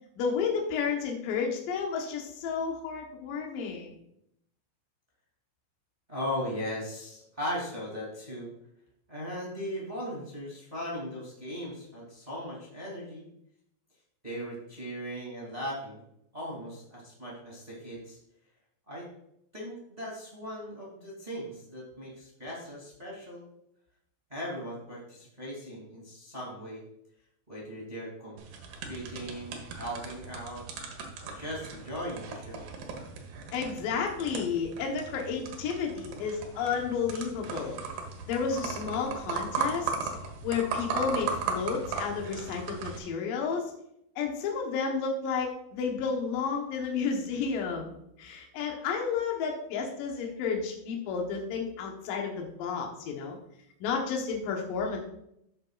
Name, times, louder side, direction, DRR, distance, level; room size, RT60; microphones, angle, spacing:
voice 1, 0.2-3.9 33.5-37.8 38.3-40.1 40.4-43.7 44.2-53.4 53.8-55.0, left 5 dB, 75° left, 1 dB, 2.1 m, -31 dB
voice 2, 6.1-8.5 9.1-13.3 14.2-16.0 16.3-18.2 18.9-19.1 19.5-23.4 24.3-26.8 27.5-28.4 28.9-30.6 31.2-32.6, equal, 15° right, -4 dB, 1.4 m, -38 dB
sound 1, 28.4-43.0, right 4 dB, 65° right, 2.9 m, -37 dB
14.0 x 6.9 x 2.5 m, 0.76 s
omnidirectional pair, 5.6 m